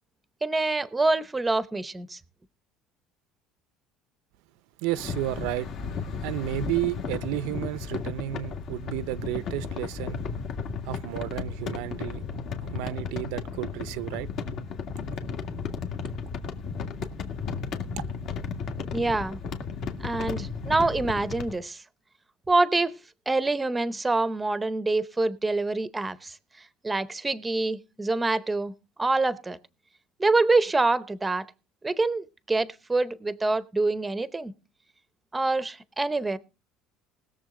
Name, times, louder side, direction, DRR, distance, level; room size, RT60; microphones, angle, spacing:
voice 1, 0.4-2.2 18.9-19.4 20.0-21.8 22.5-23.0 23.3-26.4 26.8-28.7 29.0-29.6 30.2-31.4 31.8-34.5 35.3-36.4, right 3 dB, 10° right, 0.7 m, -26 dB
voice 2, 4.8-5.7 6.0-10.3 10.8-12.3 12.6-14.3, right 14 dB, 85° right, 0.6 m, -32 dB
sound 1, 4.9-21.6, left 5 dB, 50° left, 1.8 m, -34 dB
20.0 x 7.1 x 3.8 m
cardioid pair, 145°, 0 cm